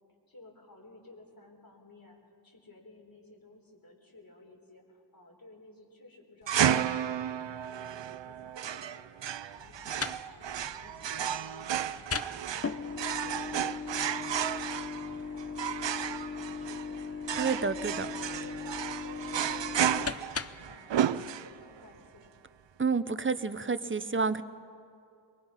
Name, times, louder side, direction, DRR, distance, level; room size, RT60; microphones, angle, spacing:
voice 1, 0.3-17.1 17.6-20.1 20.4-22.4, left 2 dB, 50° left, 0 dB, 4.3 m, -55 dB
sound 1, 6.5-21.8, right 9 dB, 80° right, 0.6 m, -33 dB
sound 2, 9.6-20.8, left 5 dB, 35° left, 0.7 m, -39 dB
voice 2, 17.4-18.1 22.8-24.4, right 4 dB, 30° right, 13 dB, 0.8 m, -29 dB
23.5 x 22.5 x 5.8 m, 2.5 s
wide cardioid pair, 65°, 43 cm